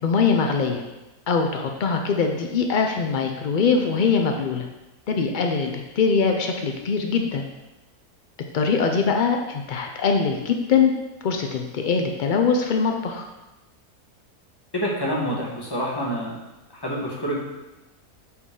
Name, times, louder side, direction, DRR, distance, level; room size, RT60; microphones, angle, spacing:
voice 1, 0.0-0.8 1.3-4.6 5.1-7.4 8.5-10.9 11.2-13.2, left 5 dB, 85° left, 3 dB, 0.4 m, -22 dB
voice 2, 14.7-16.3 16.7-17.4, equal, 15° left, -4 dB, 1.4 m, -27 dB
8.2 x 4.5 x 3.8 m, 1.0 s
omnidirectional pair, 1.6 m